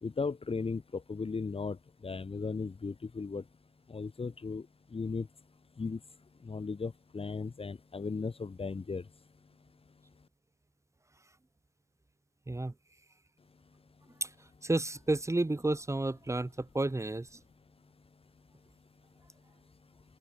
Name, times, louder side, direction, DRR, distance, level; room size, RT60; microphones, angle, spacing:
voice 1, 0.0-1.8 2.0-3.4 3.9-4.7 4.9-5.3 5.8-6.0 6.4-9.0, left 4 dB, 30° left, 2.6 m, -36 dB
voice 2, 14.6-17.4, right 2 dB, 15° right, 7.8 m, -31 dB
cardioid pair, 90°, 20 cm